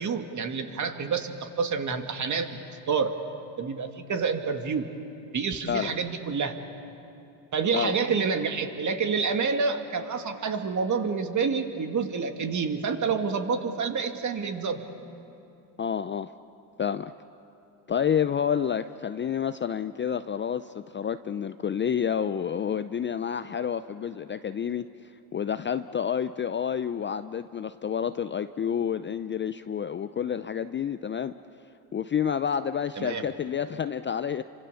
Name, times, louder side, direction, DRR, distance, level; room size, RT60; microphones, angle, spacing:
voice 1, 0.0-2.6 2.9-3.1 3.6-4.9 5.3-6.6 7.5-14.8 33.0-33.2, right 5 dB, 35° right, 5 dB, 2.3 m, -28 dB
voice 2, 7.7-8.1 15.8-16.3 16.8-17.1 17.9-31.3 31.9-34.4, left 8 dB, 25° left, 12 dB, 0.5 m, -29 dB
29.5 x 25.0 x 7.1 m, 2.7 s
supercardioid pair, 85°, 48 cm